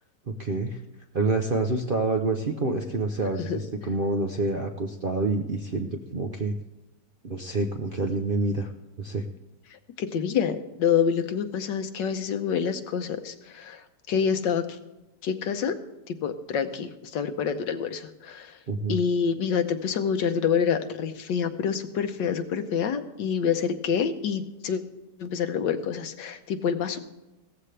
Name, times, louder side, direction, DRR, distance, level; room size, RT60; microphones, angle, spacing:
voice 1, 0.3-0.8 1.1-6.5 7.2-8.7 9.0-9.2 18.7-19.0, right 3 dB, 50° right, 4 dB, 0.6 m, -27 dB
voice 2, 9.7-14.8 15.2-15.7 16.1-18.6 18.9-24.8 25.2-27.0, left 7 dB, 80° left, 9 dB, 1.6 m, -27 dB
16.5 x 14.0 x 3.4 m, 0.99 s
omnidirectional pair, 1.9 m